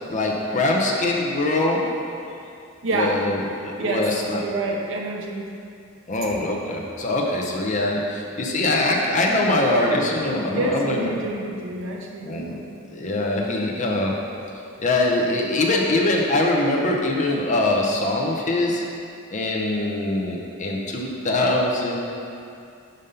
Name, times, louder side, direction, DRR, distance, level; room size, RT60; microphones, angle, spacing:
voice 1, 0.0-1.8 2.9-4.4 6.1-11.1 12.2-12.6 12.9-14.1 14.8-18.8 19.3-22.0, left 2 dB, 40° left, -1 dB, 0.7 m, -23 dB
voice 2, 2.8-3.3 3.8-5.5 6.2-6.3 10.5-12.6, right 2 dB, 70° right, 0 dB, 0.8 m, -27 dB
5.2 x 5.2 x 5.5 m, 2.5 s
head